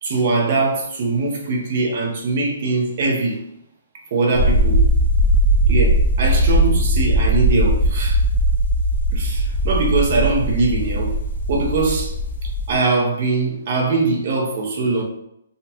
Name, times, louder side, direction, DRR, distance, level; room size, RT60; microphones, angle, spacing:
voice 1, 0.0-3.4 4.1-4.9 5.7-8.2 9.1-11.2 11.5-12.2 12.4-15.0, right 3 dB, 40° right, 0 dB, 0.7 m, -21 dB
sound 1, 4.3-12.7, right 1 dB, 65° left, 0.5 m, -18 dB
3.8 x 2.2 x 2.8 m, 0.78 s
hypercardioid pair, 170°, 0 cm